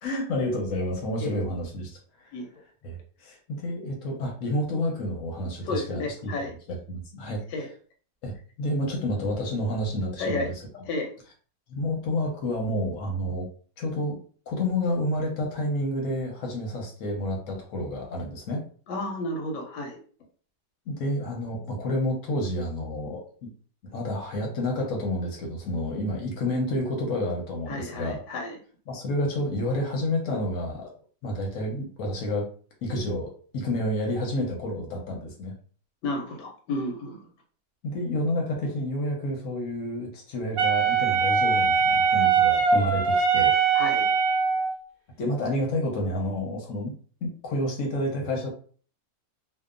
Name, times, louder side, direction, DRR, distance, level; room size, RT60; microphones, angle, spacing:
voice 1, 0.0-2.0 2.8-6.3 6.7-7.4 8.2-10.5 11.7-13.5 13.8-14.2 14.5-18.6 20.9-23.5 23.8-28.2 28.9-30.9 31.2-32.5 32.8-35.5 37.8-43.5 45.2-46.9 47.2-48.5, left 1 dB, 65° left, 1 dB, 0.8 m, -29 dB
voice 2, 5.6-6.5 7.5-7.7 10.2-10.5 10.9-11.1 18.9-20.0 27.7-28.6 36.0-37.2 43.7-44.1, left 2 dB, 85° left, 2 dB, 1.2 m, -31 dB
Wind instrument woodwind instrument, 40.6-44.7, right 6 dB, 60° right, 1.0 m, -22 dB
2.8 x 2.0 x 2.4 m, 0.43 s
omnidirectional pair, 1.8 m